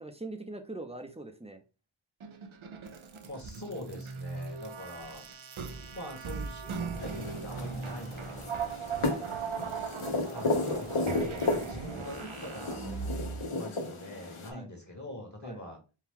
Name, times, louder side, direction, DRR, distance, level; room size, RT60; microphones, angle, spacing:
voice 1, 0.0-1.6 9.0-9.3 14.5-14.7 15.4-15.6, right 2 dB, 15° right, 6 dB, 0.7 m, -42 dB
sound 1, 2.2-13.5, right 5 dB, 75° right, 0.7 m, -39 dB
voice 2, 3.2-5.3 5.9-8.8 10.3-15.8, left 1 dB, 35° left, 1 dB, 1.3 m, -44 dB
sound 2, 7.0-14.5, left 2 dB, 75° left, 1.0 m, -34 dB
4.5 x 2.4 x 3.6 m, 0.32 s
wide cardioid pair, 40°, 49 cm